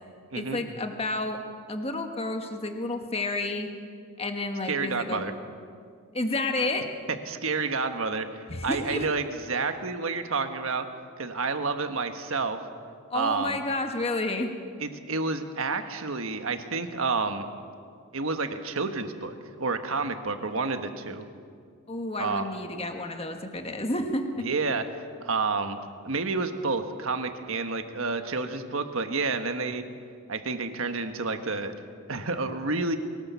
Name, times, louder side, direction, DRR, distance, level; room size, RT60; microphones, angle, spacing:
voice 1, 0.3-1.4 1.7-3.7 4.2-5.3 6.1-6.9 8.5-9.1 13.1-14.5 21.9-24.5, left 2 dB, 25° left, 5 dB, 1.5 m, -30 dB
voice 2, 4.7-5.3 7.3-10.9 11.2-12.6 13.1-13.6 14.8-17.4 18.1-21.2 22.2-22.5 24.4-24.8 25.2-25.8 26.0-29.8 30.3-31.7 32.1-33.0, right 4 dB, 65° right, 7 dB, 1.4 m, -29 dB
23.0 x 18.0 x 7.0 m, 2.2 s
head